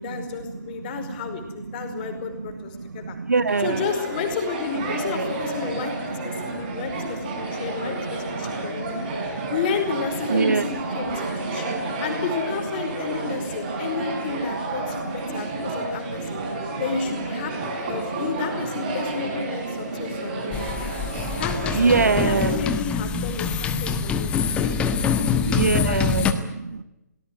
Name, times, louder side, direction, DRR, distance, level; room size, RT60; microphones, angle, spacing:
voice 1, 0.0-3.2 3.6-9.0 9.5-16.4 16.8-20.6 21.4-25.4 25.7-26.0, left 5 dB, 30° left, 6 dB, 5.0 m, -32 dB
voice 2, 1.9-2.2 2.7-3.8 4.9-5.3 6.4-7.7 8.1-9.5 10.3-11.9 14.2-14.3 15.0-16.7 18.0-18.1 20.0-20.1 20.5-21.4 21.7-22.5 23.7-24.1 24.3-24.6 25.4-26.8, right 4 dB, 60° right, 14 dB, 1.4 m, -27 dB
sound 1, 3.5-22.6, right 2 dB, 30° right, 6.0 m, -31 dB
sound 2, 20.5-26.3, left 6 dB, 10° left, 1.5 m, -25 dB
23.5 x 19.0 x 9.2 m, 0.95 s
figure-of-eight pair, 135°, 10 cm